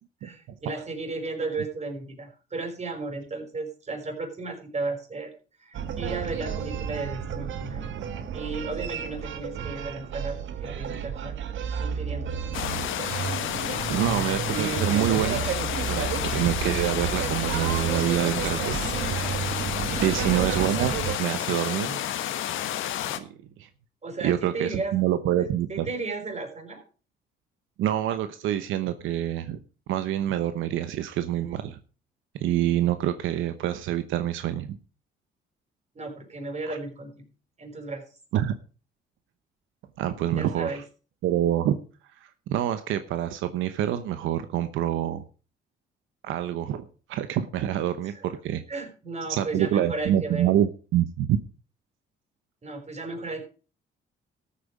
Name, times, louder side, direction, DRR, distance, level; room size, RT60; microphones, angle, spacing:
voice 1, 0.2-5.3 5.6-7.9 8.3-11.4 11.8-12.4 19.9-20.2 24.0-24.9 25.7-26.8 36.0-37.2 37.6-38.0 40.4-40.8 48.1-48.2 48.7-50.5 52.6-53.4, right 3 dB, 35° right, 4 dB, 5.3 m, -34 dB
sound 1, 5.7-21.2, right 7 dB, 75° right, 1.6 m, -31 dB
sound 2, 12.5-23.2, left 11 dB, 80° left, 1.3 m, -30 dB
voice 2, 13.9-15.4 15.9-18.8 20.0-22.0 23.1-23.7 24.2-25.9 27.8-29.6 29.9-31.8 32.4-34.8 36.7-36.8 38.3-38.5 40.0-40.8 41.2-41.8 42.5-45.2 46.2-48.6 49.3-51.4, right 11 dB, 90° right, 10 dB, 1.0 m, -26 dB
13.5 x 8.6 x 4.9 m, 0.37 s
cardioid pair, 90°, 20 cm